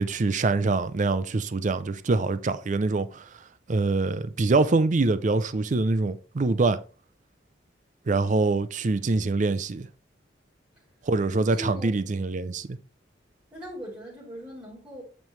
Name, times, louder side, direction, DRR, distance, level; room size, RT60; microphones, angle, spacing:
voice 1, 0.0-3.2 3.7-6.8 8.1-9.9 11.1-12.8, right 3 dB, 40° right, 0.5 m, -24 dB
voice 2, 11.5-11.9 13.5-15.0, equal, 15° right, 3.7 m, -39 dB
9.1 x 5.4 x 3.2 m
head